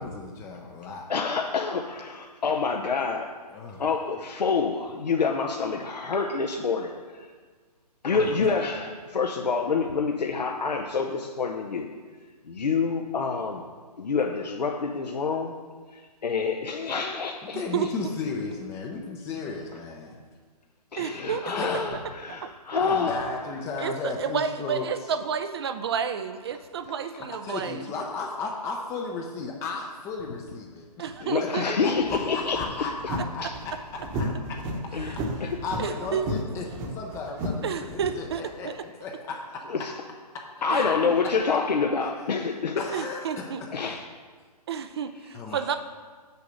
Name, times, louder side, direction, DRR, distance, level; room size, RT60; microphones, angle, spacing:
voice 1, 0.0-1.1 3.5-3.8 8.1-8.4 17.5-20.1 21.5-21.9 22.8-24.8 27.4-31.1 31.4-33.5 34.1-34.6 35.3-39.7 40.3-41.0 42.8-43.7 45.3-45.8, left 4 dB, 15° left, 1 dB, 0.5 m, -35 dB
voice 2, 1.1-3.3 3.8-7.3 8.0-11.9 12.5-13.6 14.0-15.5 15.9-17.6 20.9-23.2 31.2-32.9 33.4-33.5 34.9-35.2 35.4-35.6 39.7-39.9 40.6-42.8 43.7-44.0, left 5 dB, 80° left, 2 dB, 0.8 m, -27 dB
voice 3, 17.5-17.9 21.0-21.5 22.3-22.5 23.8-27.9 31.0-31.6 35.2-35.3 35.8-36.3 37.6-38.7 40.7-41.2 42.9-43.6 44.7-45.8, right 7 dB, 40° right, 9 dB, 0.4 m, -31 dB
sound 1, 31.9-38.4, equal, 20° right, 1.0 m, -33 dB
6.8 x 4.8 x 6.5 m, 1.5 s
hypercardioid pair, 145°, 21 cm